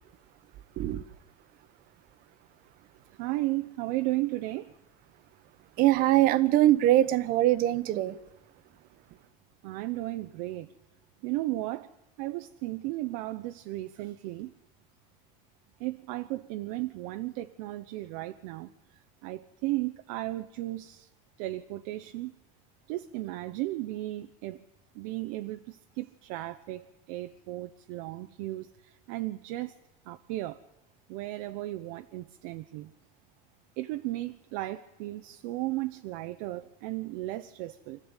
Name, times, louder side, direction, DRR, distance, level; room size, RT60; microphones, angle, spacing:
voice 1, 3.2-4.7 9.6-10.7 11.2-11.9 12.2-14.5 15.8-18.7 19.2-21.1 21.4-22.3 22.9-24.6 24.9-29.7 30.1-30.6 31.1-32.9 33.8-38.0, right 18 dB, 75° right, 0.9 m, -35 dB
voice 2, 5.8-8.1, right 14 dB, 55° right, 1.1 m, -22 dB
24.5 x 15.0 x 9.0 m
supercardioid pair, 130°, 17 cm